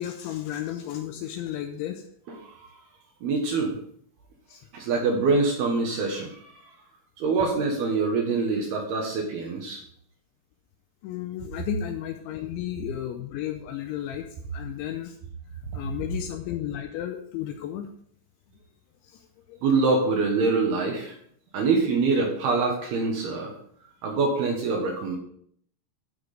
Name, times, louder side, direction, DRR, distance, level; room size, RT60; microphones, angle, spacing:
voice 1, 0.0-2.0 4.5-4.6 11.0-14.2 14.5-15.2 15.7-17.9 19.0-19.2 19.5-19.6, left 12 dB, 80° left, 6 dB, 2.8 m, -33 dB
voice 2, 3.2-3.7 4.7-6.6 7.2-9.8 19.6-21.2 21.5-23.5 24.0-25.2, right 4 dB, 65° right, 1 dB, 2.8 m, -25 dB
12.5 x 6.2 x 5.0 m, 0.64 s
omnidirectional pair, 5.8 m